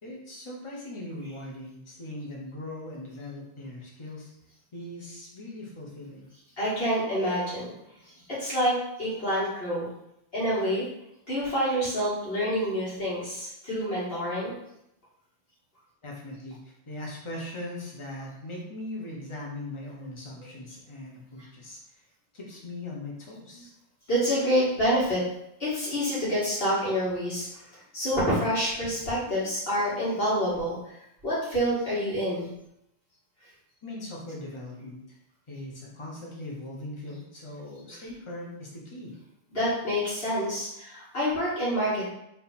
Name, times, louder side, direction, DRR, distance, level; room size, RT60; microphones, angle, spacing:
voice 1, 0.0-4.3 4.7-6.3 16.0-16.6 16.9-22.0 22.3-23.7 33.8-35.2 35.5-39.1, left 1 dB, 30° left, -3 dB, 1.0 m, -40 dB
voice 2, 6.6-7.7 8.3-9.9 10.3-10.9 11.3-14.5 24.1-25.2 25.6-27.5 27.9-30.9 31.2-32.5 39.5-42.1, equal, 65° left, -9 dB, 2.2 m, -27 dB
3.9 x 2.9 x 4.1 m, 0.81 s
omnidirectional pair, 1.1 m